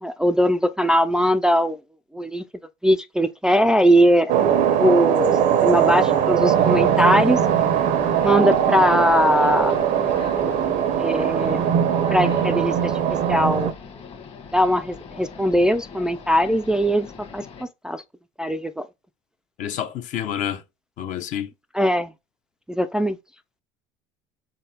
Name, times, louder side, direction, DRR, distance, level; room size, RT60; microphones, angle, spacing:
voice 1, 0.0-1.8 2.1-2.4 2.8-4.3 4.8-5.3 5.6-7.4 8.2-9.7 11.0-11.6 12.1-12.9 13.3-13.7 14.5-17.1 17.3-17.4 17.8-18.0 18.4-18.9 21.7-22.1 22.7-23.2, equal, 5° right, 0.3 m, -20 dB
sound 1, 4.3-13.7, right 9 dB, 60° right, 0.6 m, -20 dB
sound 2, 6.5-17.6, left 5 dB, 40° left, 1.3 m, -40 dB
voice 2, 19.6-20.6 21.0-21.5, left 10 dB, 55° left, 0.7 m, -28 dB
3.8 x 3.7 x 2.8 m
hypercardioid pair, 80°, 15 cm